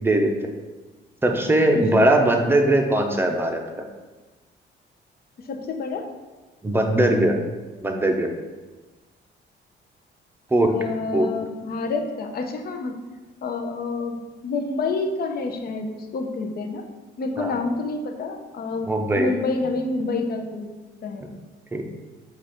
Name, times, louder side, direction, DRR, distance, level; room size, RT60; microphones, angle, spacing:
voice 1, 0.0-0.3 1.2-3.6 6.6-7.3 7.8-8.3 10.5-10.7 11.1-11.3 17.4-17.5 18.9-19.3 21.2-21.3 21.7-21.8, right 1 dB, 10° right, 3 dB, 0.6 m, -20 dB
voice 2, 5.4-6.1 10.7-13.0 13.4-16.8 17.2-18.9 19.1-20.7 21.0-21.3, left 3 dB, 50° left, 4 dB, 0.6 m, -28 dB
4.8 x 2.4 x 4.2 m, 1.2 s
cardioid pair, 90°, 20 cm